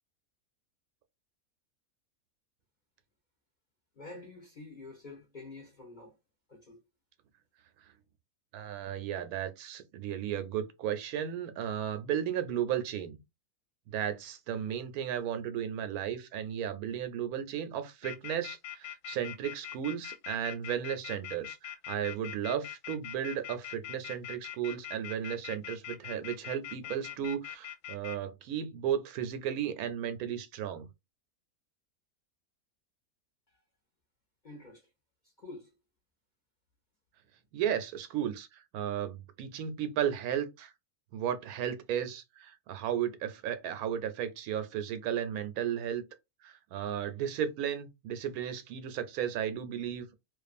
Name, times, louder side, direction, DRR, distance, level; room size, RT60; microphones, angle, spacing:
voice 1, 3.9-6.2 6.5-6.8 33.5-33.6 34.4-34.9 35.2-35.7, left 2 dB, 45° left, 0.6 m, -48 dB
voice 2, 8.5-13.2 13.9-30.9 37.5-40.7 41.1-46.0 46.4-50.2, right 9 dB, 75° right, 1.1 m, -34 dB
sound 1, 18.0-28.2, left 11 dB, 70° left, 0.9 m, -42 dB
2.5 x 2.4 x 2.4 m
omnidirectional pair, 1.6 m